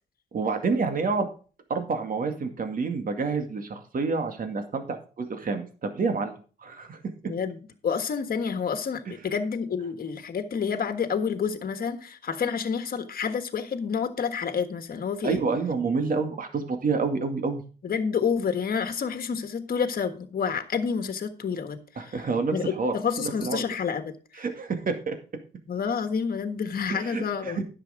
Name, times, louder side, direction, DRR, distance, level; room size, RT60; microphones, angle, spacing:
voice 1, 0.3-1.3 1.7-6.3 6.6-7.0 15.2-17.6 22.0-23.6 24.4-25.2 26.9-27.6, right 4 dB, 50° right, 2.1 m, -28 dB
voice 2, 7.3-15.4 17.8-22.2 22.5-24.4 25.7-27.6, left 6 dB, 55° left, 1.4 m, -29 dB
10.5 x 6.9 x 5.0 m
cardioid pair, 80°, 18 cm